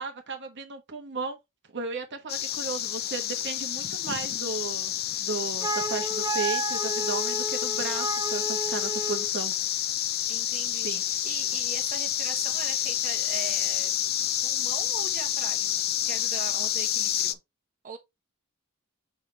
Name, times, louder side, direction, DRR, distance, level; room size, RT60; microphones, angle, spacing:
voice 1, 0.0-1.4 1.7-4.9 5.2-9.5 10.8-11.2, right 4 dB, 55° right, 1.1 m, -35 dB
sound 1, 2.3-17.3, left 11 dB, 45° left, 0.5 m, -29 dB
Wind instrument woodwind instrument, 5.6-9.3, right 3 dB, 15° right, 0.6 m, -32 dB
voice 2, 10.3-13.9 14.4-17.4 17.8-18.0, right 5 dB, 40° right, 1.2 m, -41 dB
6.7 x 4.3 x 3.2 m
head